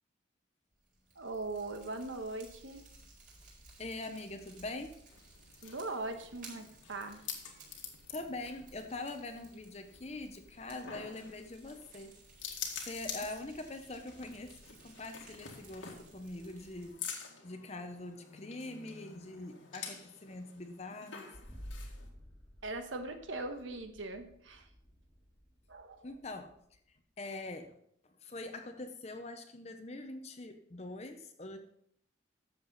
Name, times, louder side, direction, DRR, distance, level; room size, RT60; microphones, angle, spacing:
Fire, 0.7-16.9, right 3 dB, 45° right, 4.6 m, -58 dB
voice 1, 1.1-2.8 5.6-7.2 22.6-24.7 25.7-26.1, right 2 dB, 90° right, 7 dB, 1.3 m, -40 dB
voice 2, 3.8-5.0 8.1-12.2 12.8-17.0 17.4-21.4 26.0-26.5 27.2-27.8 28.2-31.6, left 2 dB, 35° left, 6 dB, 0.7 m, -43 dB
sound 1, 5.1-22.1, left 7 dB, 90° left, 2.0 m, -48 dB
sound 2, 21.3-26.9, equal, 15° left, 1.7 m, -52 dB
12.0 x 7.5 x 4.0 m, 0.69 s
head